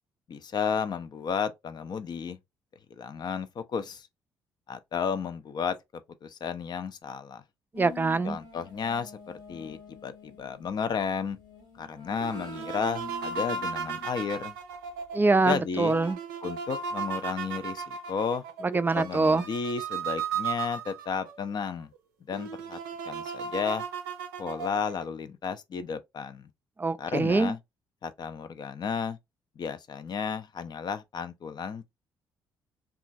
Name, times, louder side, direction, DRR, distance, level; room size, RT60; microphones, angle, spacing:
voice 1, 0.3-2.4 2.9-4.1 4.7-5.8 6.2-7.4 8.2-9.1 9.5-10.1 10.4-11.4 11.8-14.6 15.4-15.9 16.4-18.4 18.9-21.9 22.3-22.8 23.1-23.8 24.4-26.5 27.0-27.6 28.0-29.2 29.6-31.9, left 6 dB, 45° left, 0.5 m, -33 dB
sound 1, 7.7-14.4 15.7-16.1, left 5 dB, 85° left, 1.2 m, -47 dB
voice 2, 7.7-8.4 15.1-16.2 18.6-19.5 26.8-27.5, right 3 dB, 20° right, 0.3 m, -24 dB
sound 2, 12.2-21.5 22.0-22.1 22.3-25.1, right 6 dB, 85° right, 0.4 m, -36 dB
2.9 x 2.3 x 2.5 m
hypercardioid pair, 50°, 10 cm